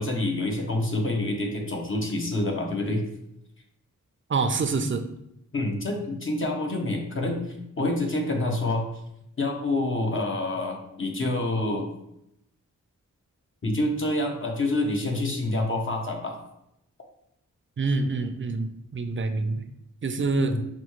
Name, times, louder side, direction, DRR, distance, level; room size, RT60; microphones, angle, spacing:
voice 1, 0.0-3.0 5.5-7.4 7.8-8.9 9.4-11.9 13.6-16.4, left 2 dB, 40° left, 1 dB, 0.9 m, -27 dB
voice 2, 4.3-5.0 17.8-19.6 20.0-20.6, right 3 dB, 40° right, 7 dB, 0.5 m, -26 dB
5.8 x 2.3 x 3.1 m, 0.80 s
cardioid pair, 55°, 32 cm